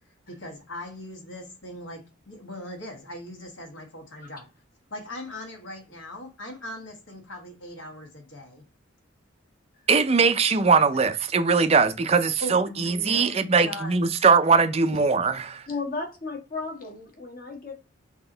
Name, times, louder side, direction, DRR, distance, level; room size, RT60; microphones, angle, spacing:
voice 1, 0.3-4.5 4.9-8.6 12.4-14.2, left 1 dB, 70° left, 1.4 m, -40 dB
voice 2, 9.9-15.6, right 5 dB, 30° right, 0.4 m, -21 dB
voice 3, 15.7-17.8, left 3 dB, 45° left, 1.3 m, -34 dB
3.9 x 2.9 x 3.8 m
head